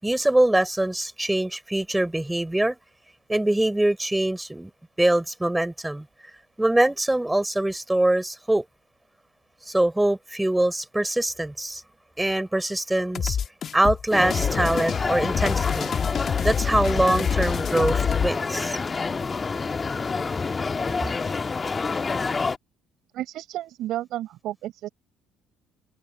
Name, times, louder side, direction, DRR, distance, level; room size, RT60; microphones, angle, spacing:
voice 1, 0.0-2.8 3.3-4.7 5.0-6.1 6.6-8.6 9.6-11.8 12.2-13.4 13.7-15.9 16.4-18.8, right 1 dB, 10° right, 6.1 m, -23 dB
sound 1, 13.1-18.3, left 8 dB, 50° left, 2.3 m, -27 dB
sound 2, 14.1-22.6, left 4 dB, 30° left, 1.9 m, -28 dB
voice 2, 23.1-24.9, right 13 dB, 70° right, 6.5 m, -32 dB
hypercardioid pair, 65°, 0 cm